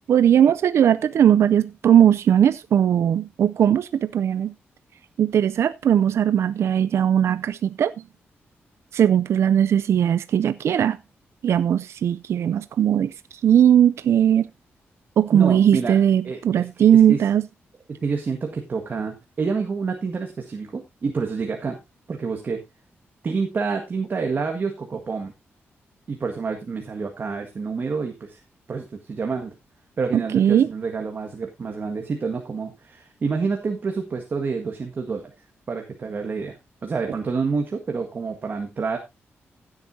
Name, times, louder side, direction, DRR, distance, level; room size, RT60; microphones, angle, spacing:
voice 1, 0.1-4.5 5.2-7.9 8.9-11.0 11.4-14.5 15.2-17.4 30.1-30.7, right 9 dB, 75° right, 0.5 m, -19 dB
voice 2, 15.3-16.0 16.2-16.6 16.9-17.2 17.9-21.8 22.1-22.6 23.2-25.3 26.1-28.4 28.7-29.5 30.0-35.2 35.7-36.6 36.8-39.0, right 4 dB, 45° right, 1.7 m, -28 dB
16.0 x 8.1 x 2.7 m
cardioid pair, 105°, 5 cm